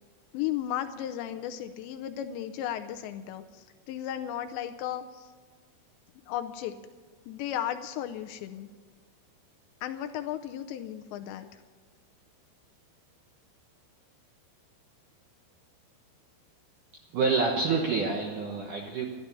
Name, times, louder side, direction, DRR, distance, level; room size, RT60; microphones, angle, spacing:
voice 1, 0.3-5.3 6.3-6.8 7.3-8.7 9.8-11.5, left 11 dB, 80° left, 8 dB, 2.7 m, -35 dB
voice 2, 17.1-19.1, right 4 dB, 75° right, 0 dB, 1.9 m, -27 dB
13.0 x 12.0 x 6.9 m, 1.5 s
omnidirectional pair, 5.4 m